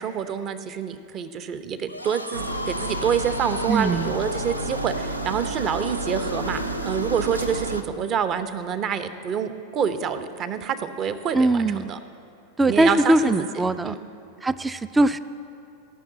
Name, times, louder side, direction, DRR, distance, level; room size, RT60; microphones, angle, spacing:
voice 1, 0.0-12.0 12.7-13.3 13.8-14.0, right 7 dB, 35° right, 11 dB, 0.7 m, -27 dB
sound 1, 1.8-7.4, left 2 dB, 85° left, 0.7 m, -36 dB
sound 2, 2.3-7.8, right 2 dB, 85° right, 0.6 m, -30 dB
voice 2, 3.7-4.1 11.3-11.9 12.6-13.9 14.4-15.2, right 2 dB, 10° right, 14 dB, 0.4 m, -21 dB
17.0 x 6.0 x 7.9 m, 2.7 s
figure-of-eight pair, 90°, 0 cm